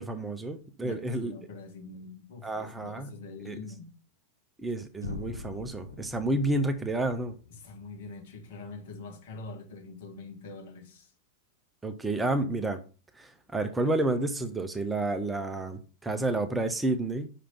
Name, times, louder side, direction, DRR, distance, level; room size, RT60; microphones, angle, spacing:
voice 1, 0.0-1.3 2.4-3.1 3.4-3.6 4.6-7.3 11.8-12.8 13.2-17.3, right 2 dB, 10° right, 0.7 m, -30 dB
voice 2, 0.8-3.9 7.5-11.1, left 3 dB, 50° left, 1.6 m, -44 dB
sound 1, 5.0-9.0, left 4 dB, 80° left, 0.8 m, -44 dB
5.7 x 5.1 x 5.6 m
figure-of-eight pair, 90°, 0 cm